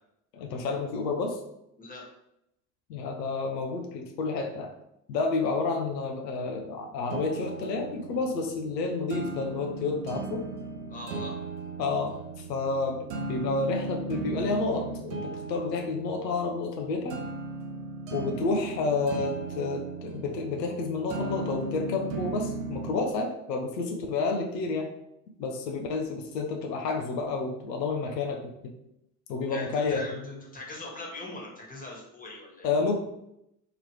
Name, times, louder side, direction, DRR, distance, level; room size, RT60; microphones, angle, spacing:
voice 1, 0.3-1.4 2.9-4.7 5.1-10.4 11.8-13.0 13.3-17.2 18.1-24.9 25.4-28.7 29.3-30.4 32.6-33.0, left 3 dB, 85° left, 2 dB, 0.6 m, -30 dB
sound 1, 7.1-23.1, right 3 dB, 80° right, 0.6 m, -37 dB
voice 2, 10.9-11.3 29.5-32.7, left 2 dB, 15° left, -2 dB, 1.4 m, -41 dB
2.9 x 2.9 x 3.0 m, 0.80 s
hypercardioid pair, 60°, 49 cm